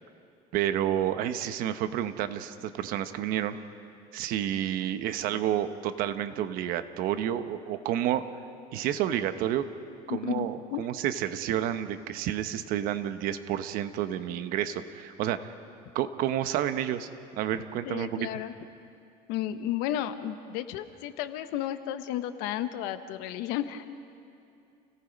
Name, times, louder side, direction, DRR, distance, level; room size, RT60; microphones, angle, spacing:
voice 1, 0.5-3.6 4.1-8.2 8.7-9.6 10.1-15.5 15.9-18.3, right 11 dB, 60° right, 10 dB, 1.0 m, -30 dB
voice 2, 10.1-10.9 17.8-18.5 19.3-23.8, left 12 dB, 80° left, 10 dB, 1.1 m, -33 dB
29.0 x 17.5 x 5.3 m, 2.5 s
cardioid pair, 150°, 16 cm